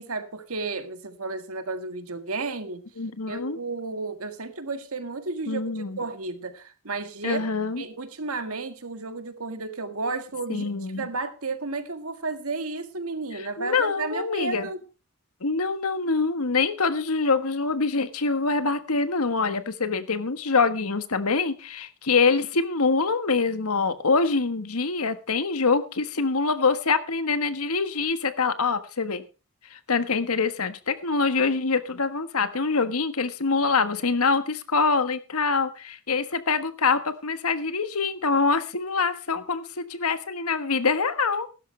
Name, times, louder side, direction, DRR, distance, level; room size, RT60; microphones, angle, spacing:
voice 1, 0.0-2.8 3.3-7.4 7.8-14.8, right 3 dB, 85° right, 9 dB, 1.8 m, -32 dB
voice 2, 3.0-3.6 5.5-6.0 7.2-7.8 10.5-11.1 13.3-14.7 15.4-29.2 29.7-41.5, left 4 dB, 90° left, 10 dB, 1.4 m, -25 dB
16.0 x 12.5 x 3.3 m, 0.31 s
head